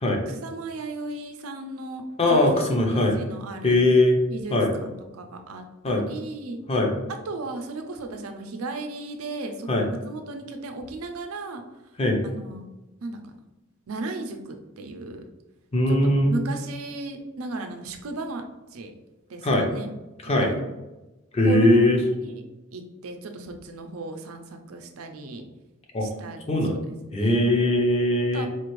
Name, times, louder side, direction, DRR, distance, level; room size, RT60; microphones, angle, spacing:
voice 1, 0.3-2.0 2.3-3.8 4.3-6.6 7.3-11.6 12.2-12.6 13.0-13.2 13.9-15.2 15.9-18.4 18.7-18.9 19.3-19.9 20.4-20.6 21.5-22.4 22.7-25.4 26.0-26.4 26.7-27.5 28.3-28.5, right 3 dB, 85° right, 5 dB, 0.5 m, -35 dB
voice 2, 2.2-3.2 3.6-4.2 4.5-4.7 5.8-6.0 6.7-6.9 9.7-9.9 12.0-12.2 15.7-16.4 19.4-19.7 20.2-20.5 21.3-22.0 25.9-26.1 26.5-26.8 27.1-28.5, left 1 dB, 30° left, 1 dB, 0.6 m, -20 dB
4.2 x 2.5 x 3.1 m, 1.0 s
head